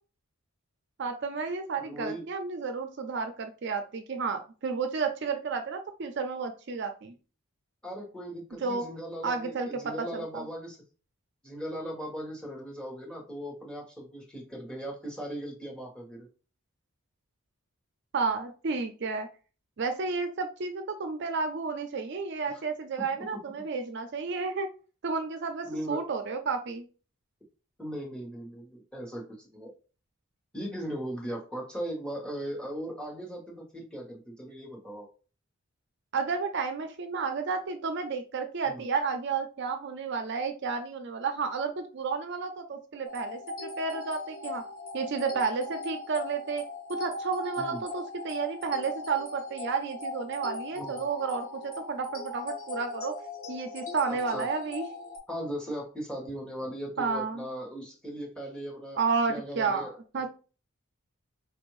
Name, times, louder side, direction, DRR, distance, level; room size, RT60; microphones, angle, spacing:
voice 1, 1.0-7.1 8.6-8.9 9.2-10.4 18.1-19.3 19.8-24.7 25.0-26.8 36.1-44.6 44.9-46.6 46.9-53.1 53.5-54.9 57.0-57.4 59.0-60.3, right 5 dB, 55° right, 6 dB, 0.5 m, -31 dB
voice 2, 1.8-2.2 7.8-10.8 11.4-16.3 22.5-22.6 25.6-26.0 27.8-29.7 30.5-35.1 38.6-38.8 47.6-47.8 50.7-50.9 54.1-54.5 55.3-59.0 59.3-59.9, equal, 5° left, -3 dB, 1.1 m, -38 dB
sound 1, 43.1-55.2, left 3 dB, 80° left, 1.4 m, -39 dB
4.5 x 2.6 x 3.1 m, 0.35 s
head